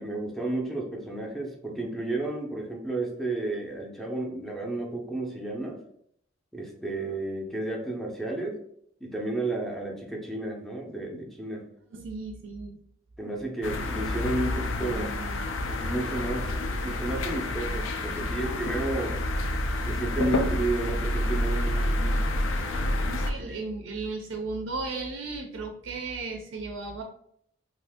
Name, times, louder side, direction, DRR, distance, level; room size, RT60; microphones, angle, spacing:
voice 1, 0.0-5.8 6.5-8.6 9.0-11.6 13.2-15.1 15.7-16.5 16.8-19.2 19.8-22.3 23.5-23.6, right 2 dB, ahead, 0 dB, 0.5 m, -32 dB
voice 2, 11.9-12.8 14.8-15.5 22.7-22.8 23.1-27.0, right 3 dB, 70° right, 3 dB, 0.4 m, -35 dB
sound 1, 13.6-23.3, left 1 dB, 80° left, 0.4 m, -28 dB
2.7 x 2.5 x 3.5 m, 0.69 s
head